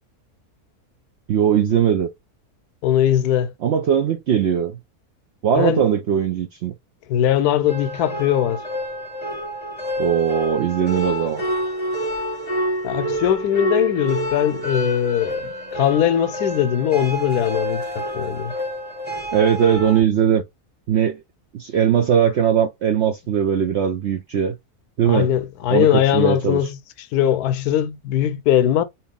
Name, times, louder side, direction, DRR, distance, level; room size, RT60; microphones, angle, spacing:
voice 1, 1.3-2.1 3.6-4.8 5.4-6.7 10.0-11.4 19.3-20.4 20.9-21.2 21.5-24.6 25.0-25.3 25.7-26.6, right 8 dB, 75° right, 0.6 m, -19 dB
voice 2, 2.8-3.5 5.6-5.8 7.1-8.6 12.8-18.5 25.1-26.8 27.1-28.8, left 10 dB, 80° left, 1.1 m, -20 dB
sound 1, 7.7-20.0, right 1 dB, 10° right, 0.9 m, -28 dB
2.8 x 2.8 x 3.5 m
omnidirectional pair, 1.6 m